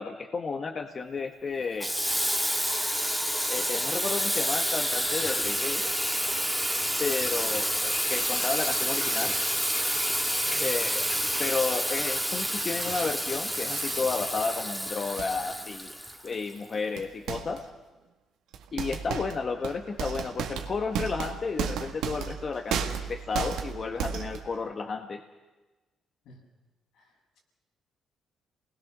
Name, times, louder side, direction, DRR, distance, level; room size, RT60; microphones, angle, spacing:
voice 1, 0.0-1.9 3.5-5.8 7.0-9.4 10.6-11.1 11.4-15.9 16.2-17.7 18.7-25.2, left 4 dB, 40° left, 5 dB, 1.3 m, -32 dB
Water tap faucet / Sink (filling or washing), 1.8-16.6, equal, ahead, 1.9 m, -29 dB
sound 1, 12.5-13.2 13.5-14.0 15.2-15.3 16.3-16.4 17.0-17.7 18.5-24.6, right 7 dB, 90° right, 1.9 m, -34 dB
voice 2, 26.9-27.4, left 1 dB, 85° left, -1 dB, 7.2 m, -53 dB
29.0 x 20.0 x 6.6 m, 1.2 s
cardioid pair, 90°, 0 cm